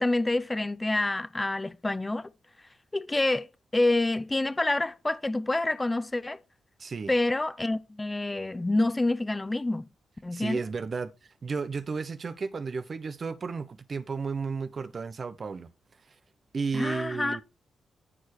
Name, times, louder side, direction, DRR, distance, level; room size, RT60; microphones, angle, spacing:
voice 1, 0.0-2.3 2.9-3.5 3.7-6.4 7.1-9.9 10.2-10.6 16.7-17.4, left 2 dB, 15° left, 0.9 m, -27 dB
voice 2, 6.8-7.1 10.3-11.1 11.4-15.7 16.5-17.4, right 5 dB, 45° right, 0.8 m, -33 dB
14.0 x 4.7 x 4.3 m
cardioid pair, 95°, 0 cm